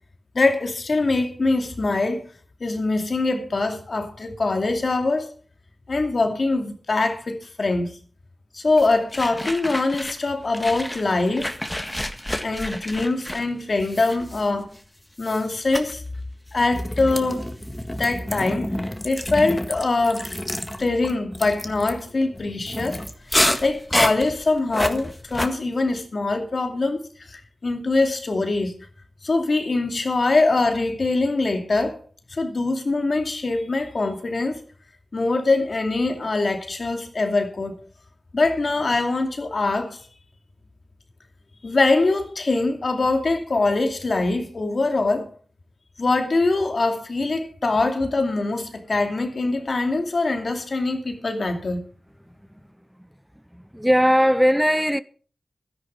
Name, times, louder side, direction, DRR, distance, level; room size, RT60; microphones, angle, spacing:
voice 1, 0.3-2.2 2.6-5.3 5.9-8.0 8.5-11.5 12.4-14.7 15.2-16.0 16.5-17.5 17.9-18.7 19.0-20.3 20.8-23.0 23.6-28.7 29.2-32.0 32.3-34.6 35.1-37.8 38.3-40.0 41.6-45.3 46.0-51.8, left 3 dB, 65° left, 2.5 m, -23 dB
sound 1, 8.8-10.3 10.5-14.8 15.2-15.5 15.7-15.9 16.6-25.5, left 1 dB, 15° left, 1.7 m, -29 dB
voice 2, 53.5-55.0, equal, 5° right, 0.5 m, -19 dB
13.0 x 10.5 x 5.4 m
cardioid pair, 55°, 0 cm